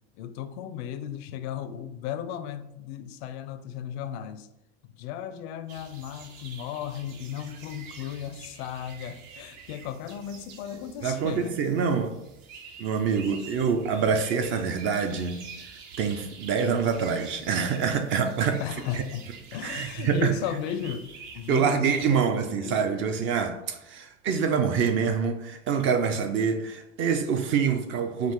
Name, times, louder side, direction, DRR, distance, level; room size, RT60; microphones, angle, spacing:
voice 1, 0.2-4.5 4.8-11.6 13.3-13.7 14.1-14.2 18.6-21.1 21.3-22.9, left 9 dB, 55° left, 0.5 m, -35 dB
sound 1, 5.7-21.6, right 5 dB, 60° right, 0.9 m, -47 dB
voice 2, 11.0-12.1 12.8-15.7 16.0-18.6 18.9-19.0 19.6-20.3 21.5-28.3, right 6 dB, 35° right, 0.4 m, -26 dB
4.7 x 2.5 x 3.7 m
hypercardioid pair, 105°, 37 cm